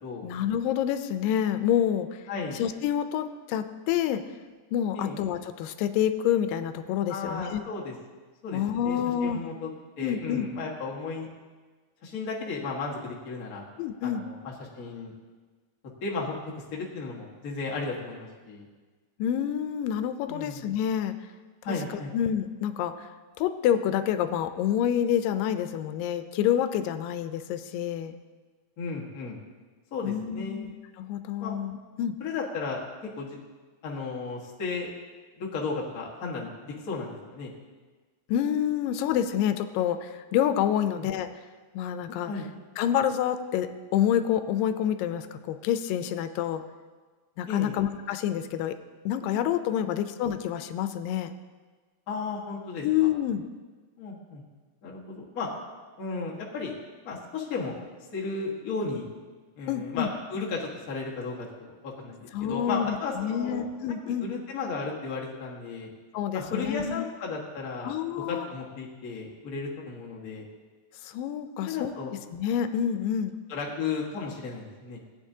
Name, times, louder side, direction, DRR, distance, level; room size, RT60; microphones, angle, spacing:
voice 1, 0.2-2.2 2.5-4.2 4.7-7.6 8.5-9.4 10.0-10.5 13.8-14.2 19.2-21.1 21.7-21.8 22.1-23.1 23.4-28.2 30.0-32.2 38.3-41.3 41.7-42.3 42.8-46.6 47.4-48.8 49.1-51.3 52.8-53.5 59.7-60.1 62.3-64.3 66.1-67.0 67.8-68.5 71.0-71.9 72.3-73.3, left 10 dB, 85° left, 10 dB, 2.3 m, -28 dB
voice 2, 2.3-2.6 4.9-5.2 7.1-7.9 8.4-9.7 10.0-11.3 12.0-13.6 14.0-15.1 16.0-18.7 20.3-20.7 21.6-22.1 28.8-29.4 29.9-30.6 31.4-31.6 32.2-32.8 33.2-33.4 33.8-34.9 35.4-37.5 40.8-41.1 42.3-42.5 47.5-47.8 49.8-50.0 52.1-53.1 54.0-54.4 54.8-55.5 56.0-56.7 57.0-57.8 58.1-59.1 59.6-63.7 64.0-65.9 66.3-67.9 68.2-70.4 71.7-72.1 73.5-75.0, left 4 dB, 45° left, -4 dB, 1.2 m, -34 dB
17.0 x 8.9 x 2.8 m, 1.4 s
omnidirectional pair, 3.9 m